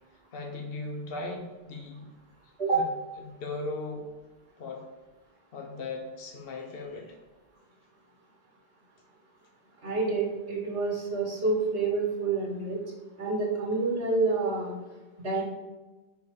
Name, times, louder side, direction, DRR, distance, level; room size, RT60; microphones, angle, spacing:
voice 1, 0.3-2.1 2.7-2.8 3.2-4.0 4.6-4.9 5.5-7.2, left 2 dB, 60° left, 2 dB, 1.1 m, -37 dB
voice 2, 9.8-12.8 13.2-14.7 15.2-15.4, right 3 dB, 65° right, -3 dB, 1.6 m, -28 dB
5.1 x 4.6 x 4.9 m, 1.2 s
omnidirectional pair, 1.1 m